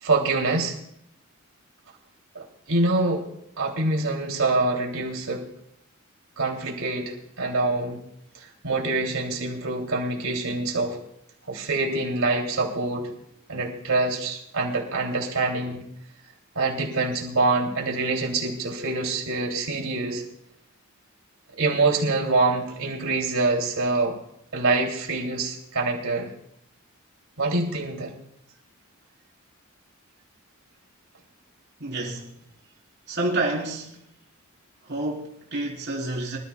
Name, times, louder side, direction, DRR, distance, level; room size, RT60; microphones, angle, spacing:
voice 1, 0.0-0.8 2.3-3.3 3.6-5.5 6.4-8.0 8.3-11.0 11.5-13.1 13.5-15.8 16.5-20.2 21.6-24.2 24.5-26.3 27.4-28.1, right 3 dB, 80° right, 3.0 m, -25 dB
voice 2, 31.8-32.4 33.1-34.0 34.8-36.4, right 2 dB, 55° right, 4.1 m, -29 dB
25.5 x 13.5 x 2.4 m
head